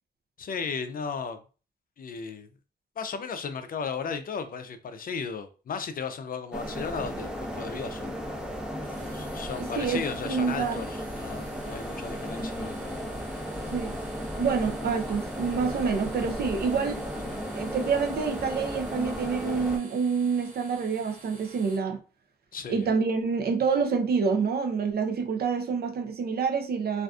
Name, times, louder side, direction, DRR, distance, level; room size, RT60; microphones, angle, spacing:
voice 1, 0.4-1.4 2.0-2.5 3.0-8.2 9.1-12.7 17.2-17.4 22.5-22.9, left 5 dB, 55° left, 0.4 m, -35 dB
sound 1, 6.5-19.8, equal, 5° right, 0.6 m, -35 dB
sound 2, 8.8-21.8, right 2 dB, 50° right, 1.0 m, -51 dB
voice 2, 9.6-10.8 13.7-13.9 14.3-17.0 17.5-22.0 22.7-27.0, right 5 dB, 65° right, 0.6 m, -27 dB
2.5 x 2.3 x 2.3 m
cardioid pair, 60°, 18 cm